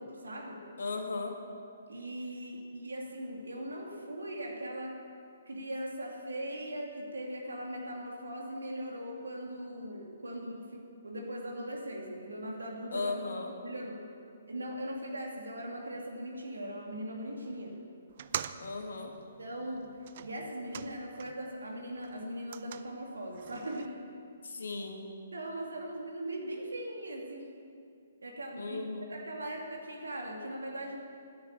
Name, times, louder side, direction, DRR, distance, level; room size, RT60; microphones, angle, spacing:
voice 1, 0.0-0.6 1.9-5.0 5.5-13.1 13.6-14.0 14.5-17.8 19.4-19.9 20.2-23.9 25.3-27.5 28.2-28.8 29.1-31.0, right 1 dB, 75° right, 0 dB, 2.6 m, -40 dB
voice 2, 0.8-1.4 12.9-13.5 18.6-19.1 24.4-25.1 28.6-29.1, left 3 dB, 65° left, 3 dB, 1.9 m, -36 dB
sound 1, 18.1-21.5 21.8-23.9, right 9 dB, 45° right, 0.5 m, -44 dB
10.5 x 8.8 x 8.9 m, 2.4 s
figure-of-eight pair, 130°, 0 cm